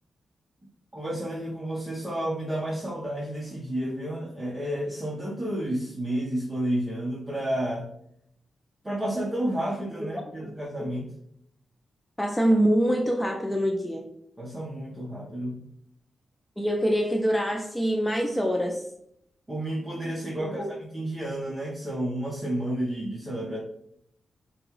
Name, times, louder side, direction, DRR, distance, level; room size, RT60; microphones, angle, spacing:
voice 1, 0.9-7.9 8.8-11.1 14.4-15.6 19.5-23.6, right 1 dB, 20° right, -5 dB, 1.2 m, -31 dB
voice 2, 12.2-14.1 16.6-18.9 20.4-20.7, equal, 10° left, 2 dB, 0.6 m, -25 dB
5.9 x 2.4 x 3.3 m, 0.71 s
cardioid pair, 70°, 0 cm